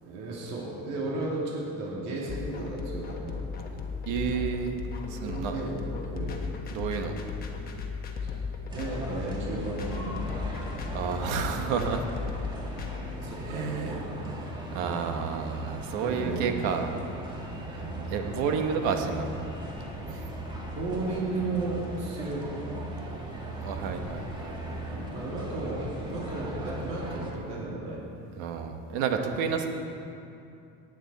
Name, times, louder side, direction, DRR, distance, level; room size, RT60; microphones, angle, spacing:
voice 1, 0.0-3.4 5.2-6.4 8.2-8.4 8.6-10.3 12.7-12.8 13.2-14.1 16.0-16.9 17.8-18.1 20.8-22.5 24.9-28.0, right 2 dB, 55° right, -4 dB, 2.4 m, -34 dB
sound 1, 2.3-13.0, left 5 dB, 30° left, 1.1 m, -35 dB
voice 2, 4.1-4.8 5.0-5.6 6.7-7.2 10.9-12.1 13.4-14.1 14.4-16.9 17.7-17.8 18.1-19.3 20.1-20.2 23.6-24.8 28.3-29.7, right 6 dB, 75° right, 5 dB, 1.4 m, -30 dB
sound 2, 8.7-27.3, right 1 dB, 15° right, 1.6 m, -38 dB
18.0 x 9.2 x 4.1 m, 2.7 s
cardioid pair, 160°, 31 cm